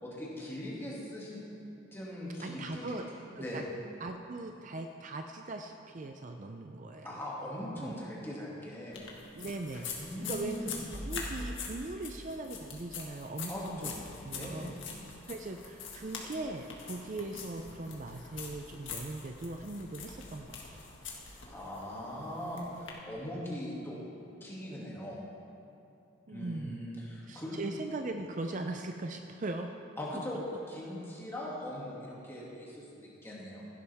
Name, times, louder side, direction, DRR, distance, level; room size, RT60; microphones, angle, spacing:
voice 1, 0.0-1.4 1.9-3.0 3.4-3.6 7.0-9.0 10.0-10.7 13.5-13.9 14.3-14.8 21.5-24.0 24.4-25.2 26.3-27.6 30.0-33.6, left 1 dB, 10° left, -6 dB, 2.2 m, -40 dB
voice 2, 2.4-3.1 3.3-3.6 4.0-7.2 7.7-8.0 9.4-9.9 10.2-13.9 14.2-14.7 15.2-20.8 26.3-26.9 27.3-29.7, right 2 dB, 40° right, 5 dB, 0.5 m, -40 dB
sound 1, 8.9-22.9, left 4 dB, 70° left, 1.7 m, -44 dB
16.0 x 11.5 x 3.5 m, 2.7 s
head